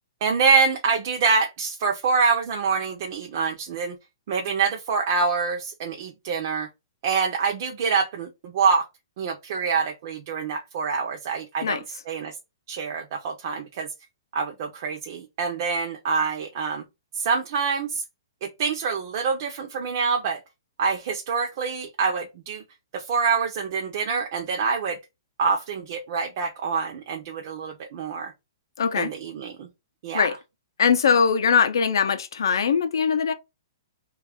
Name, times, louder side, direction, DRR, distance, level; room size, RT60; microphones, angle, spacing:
voice 1, 0.2-4.0 4.3-6.7 7.0-8.8 9.2-11.8 12.1-12.3 12.7-13.9 14.3-16.8 17.1-18.0 18.4-20.4 20.8-22.6 22.9-25.0 25.4-28.3 29.0-29.7 30.0-30.3, right 5 dB, 45° right, 0.5 m, -25 dB
voice 2, 28.8-29.1 30.1-30.3 30.8-33.3, left 6 dB, 80° left, 0.5 m, -21 dB
3.0 x 2.3 x 3.4 m
hypercardioid pair, 165°, 2 cm